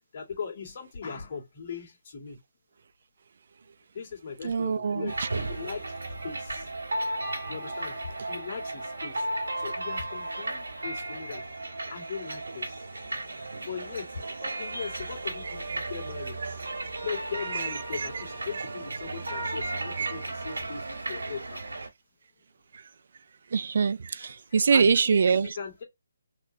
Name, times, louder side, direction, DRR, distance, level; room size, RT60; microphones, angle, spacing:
voice 1, 0.1-2.4 3.9-6.7 7.5-9.3 9.6-11.4 11.9-12.9 13.1-13.4 13.7-16.7 17.0-21.8 24.2-25.8, left 6 dB, 45° left, 1.9 m, -39 dB
voice 2, 4.4-5.3 15.4-15.8 16.4-16.5 16.8-16.9 17.5-18.2 18.5-18.6 19.4-20.1 21.2-21.3 22.7-22.8 23.5-25.6, right 5 dB, 60° right, 0.3 m, -26 dB
sound 1, 5.1-21.9, right 2 dB, 85° right, 1.9 m, -35 dB
4.1 x 3.1 x 2.8 m
figure-of-eight pair, 155°, 0 cm